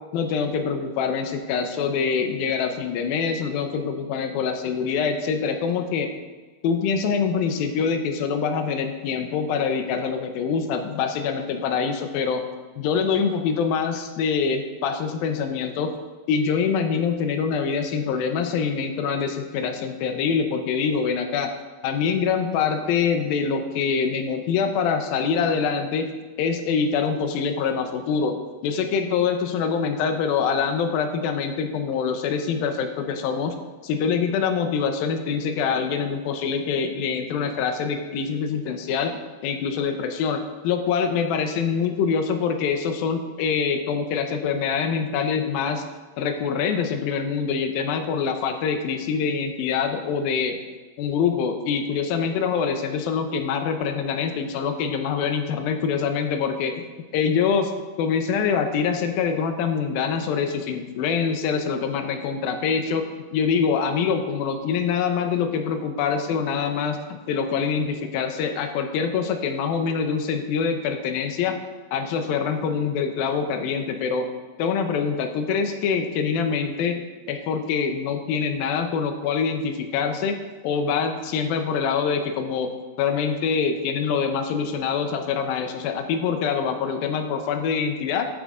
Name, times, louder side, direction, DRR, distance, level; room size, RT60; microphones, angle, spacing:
voice 1, 0.1-6.1 6.6-12.4 12.8-15.9 16.3-21.5 21.8-26.1 26.4-33.6 33.8-45.8 46.2-50.6 51.0-56.9 57.1-57.7 58.0-71.6 71.9-74.3 74.6-82.7 83.0-88.3, left 6 dB, 80° left, 6 dB, 2.5 m, -25 dB
11.5 x 7.7 x 3.6 m, 1.3 s
omnidirectional pair, 4.4 m